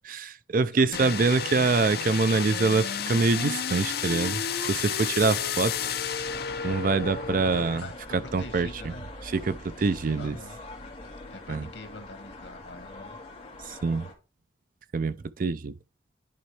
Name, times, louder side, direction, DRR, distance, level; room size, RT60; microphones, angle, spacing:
voice 1, 0.0-5.8 6.6-7.8 8.3-8.7 9.3-10.4 11.5-11.7 13.7-14.1 14.9-15.7, right 4 dB, 45° right, 0.4 m, -25 dB
sound 1, 0.9-7.8, left 7 dB, 55° left, 0.6 m, -31 dB
sound 2, 6.2-14.1, left 2 dB, 30° left, 2.6 m, -43 dB
voice 2, 7.4-9.0 10.2-10.6 11.3-13.2, left 2 dB, 80° left, 1.9 m, -44 dB
10.5 x 4.3 x 3.3 m
head